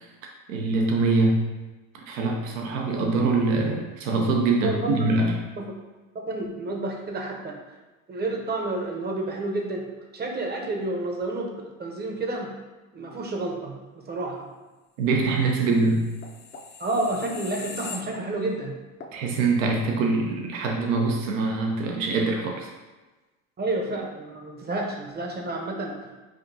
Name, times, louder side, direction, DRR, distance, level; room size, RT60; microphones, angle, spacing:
voice 1, 0.5-1.4 2.1-5.4 15.0-16.1 19.1-22.7, right 3 dB, 75° right, 1 dB, 0.9 m, -24 dB
voice 2, 6.1-7.6 8.1-9.9 10.1-12.5 12.9-14.5 16.8-18.8 23.6-26.2, right 2 dB, 25° right, 1 dB, 0.8 m, -30 dB
sound 1, 15.7-18.6 19.0-19.2, left 4 dB, 25° left, 0.5 m, -41 dB
5.1 x 2.6 x 2.7 m, 1.2 s
hypercardioid pair, 80°, 39 cm